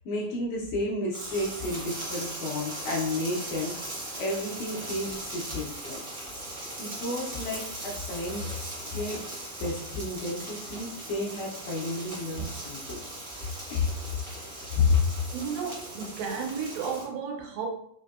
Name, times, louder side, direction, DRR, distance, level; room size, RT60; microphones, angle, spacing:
voice 1, 0.0-3.8 4.2-6.0 6.8-8.5 8.8-9.2 9.6-13.0 13.7-13.9 14.2-15.0, left 3 dB, 80° left, 1.7 m, -31 dB
sound 1, 1.1-17.1, right 1 dB, 70° right, 0.8 m, -39 dB
voice 2, 15.3-17.7, right 6 dB, 90° right, 2.4 m, -33 dB
5.2 x 2.6 x 2.3 m
omnidirectional pair, 3.9 m